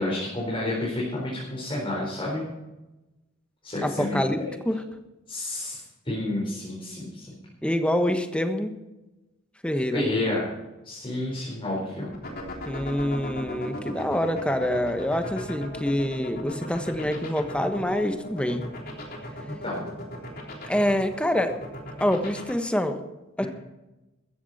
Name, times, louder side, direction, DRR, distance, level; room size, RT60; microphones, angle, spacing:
voice 1, 0.0-2.4 3.6-4.2 5.3-7.3 9.9-10.5 10.8-12.1 19.5-19.9 23.4-23.5, left 1 dB, 25° left, -5 dB, 4.6 m, -30 dB
voice 2, 3.8-4.8 7.6-8.7 9.6-10.1 12.6-18.7 20.6-21.5 22.0-23.0 23.4-23.5, left 1 dB, 5° left, 7 dB, 1.3 m, -26 dB
sound 1, 12.1-22.5, left 1 dB, 50° left, 3.4 m, -36 dB
14.5 x 14.5 x 4.3 m, 1.0 s
head